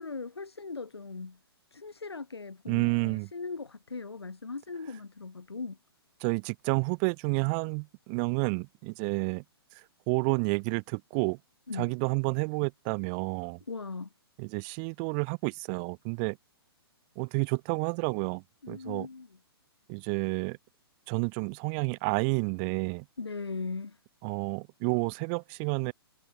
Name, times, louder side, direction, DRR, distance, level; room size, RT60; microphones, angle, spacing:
voice 1, 0.0-1.4 1.7-5.8 11.7-12.0 13.7-14.1 18.6-19.3 23.2-24.0, left 4 dB, 80° left, 0.6 m, -39 dB
voice 2, 2.7-3.3 6.2-9.4 10.1-11.4 11.7-13.6 14.4-16.4 17.2-19.1 19.9-20.6 21.1-23.0 24.2-25.9, right 40 dB or more, 20° right, 0.3 m, -30 dB
figure-of-eight pair, 120°, 13 cm